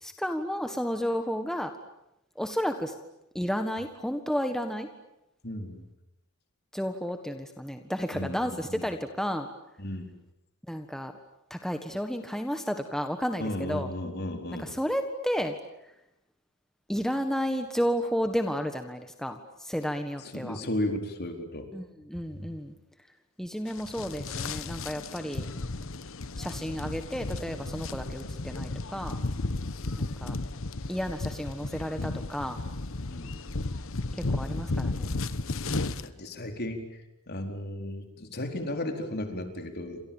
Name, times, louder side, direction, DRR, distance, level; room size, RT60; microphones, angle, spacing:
voice 1, 0.0-1.7 2.3-2.9 3.3-4.9 6.7-9.5 10.7-11.1 11.5-13.9 14.6-15.6 16.9-20.6 21.7-22.7 23.4-25.5 26.4-29.2 30.0-30.4 30.9-32.6 34.1-35.2 35.6-36.0, equal, ahead, 6 dB, 1.5 m, -32 dB
voice 2, 5.4-5.8 8.1-8.8 9.8-10.1 13.4-14.7 20.2-21.7 22.4-22.5 33.1-33.4 36.0-36.8 37.3-40.0, left 1 dB, 45° left, 5 dB, 4.5 m, -34 dB
sound 1, 23.7-36.1, left 2 dB, 65° left, 1.2 m, -34 dB
29.5 x 27.0 x 7.3 m, 0.86 s
head